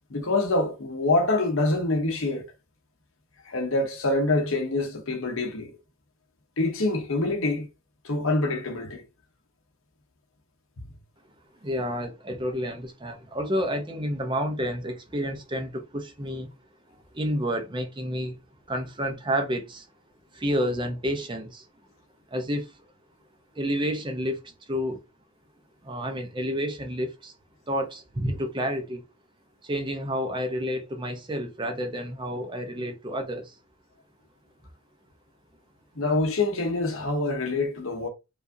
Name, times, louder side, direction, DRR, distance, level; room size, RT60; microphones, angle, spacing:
voice 1, 0.1-2.5 3.4-5.7 6.6-7.7 8.0-9.0 36.0-38.1, left 2 dB, 70° left, 0.9 m, -25 dB
voice 2, 11.6-16.5 17.1-18.4 18.7-19.9 20.3-21.7 22.3-22.8 23.5-25.0 25.8-27.3 27.7-29.0 29.6-33.6, equal, 20° right, 0.7 m, -30 dB
4.9 x 2.5 x 2.6 m
head